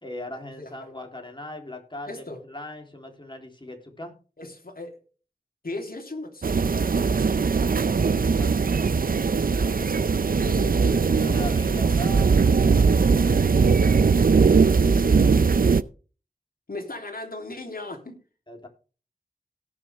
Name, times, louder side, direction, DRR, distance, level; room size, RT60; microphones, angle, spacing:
voice 1, 0.0-4.2 8.1-9.0 11.2-12.4 13.1-13.9 18.5-18.7, left 1 dB, 30° left, 2 dB, 3.4 m, -39 dB
voice 2, 0.6-0.9 2.0-2.4 4.4-5.0 5.6-6.6 9.4-10.1 10.4-11.5 14.6-15.4 16.7-18.2, left 2 dB, 75° left, 2 dB, 3.0 m, -38 dB
sound 1, 6.4-15.8, right 5 dB, 70° right, 0.5 m, -20 dB
18.0 x 6.3 x 3.5 m, 0.36 s
wide cardioid pair, 45°, 15 cm